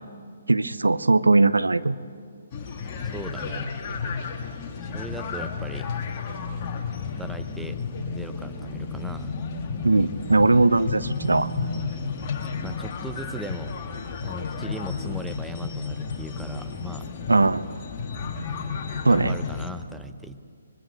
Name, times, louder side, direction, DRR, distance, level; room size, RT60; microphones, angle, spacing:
voice 1, 0.5-2.0 9.8-11.5 17.3-17.7 19.0-19.4, right 2 dB, 80° right, 15 dB, 0.7 m, -19 dB
sound 1, 2.5-19.7, left 5 dB, 30° left, 2.2 m, -32 dB
voice 2, 3.0-3.7 4.8-5.9 7.0-7.8 8.1-9.4 12.6-13.8 14.2-17.1 19.1-20.4, right 1 dB, 5° right, 8 dB, 0.8 m, -38 dB
24.5 x 22.5 x 6.9 m, 2.4 s
figure-of-eight pair, 135°, 0 cm